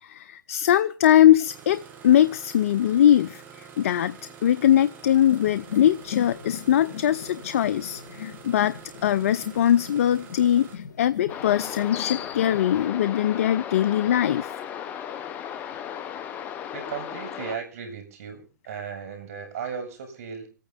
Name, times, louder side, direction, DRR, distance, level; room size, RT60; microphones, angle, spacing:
voice 1, 0.0-4.2 4.4-8.7 9.0-14.5, left 11 dB, 45° left, 0.6 m, -21 dB
Engine starting, 1.5-10.8, right 7 dB, 15° right, 1.7 m, -46 dB
sound 1, 5.2-12.9, left 9 dB, 65° left, 2.0 m, -38 dB
sound 2, 11.3-17.6, left 9 dB, 15° left, 0.8 m, -35 dB
voice 2, 16.7-20.5, right 6 dB, 45° right, 6.2 m, -36 dB
27.0 x 9.2 x 3.6 m
hypercardioid pair, 145°, 10 cm